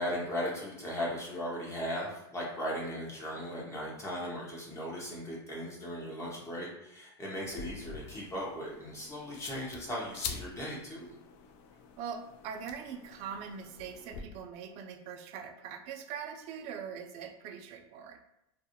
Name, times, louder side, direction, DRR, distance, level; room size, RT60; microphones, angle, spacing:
voice 1, 0.0-11.1, equal, 20° left, -4 dB, 0.7 m, -37 dB
sound 1, 7.4-14.2, left 6 dB, 50° left, 0.4 m, -46 dB
voice 2, 12.0-18.2, right 7 dB, 50° right, 5 dB, 0.4 m, -42 dB
2.3 x 2.0 x 2.8 m, 0.87 s
hypercardioid pair, 110°, 14 cm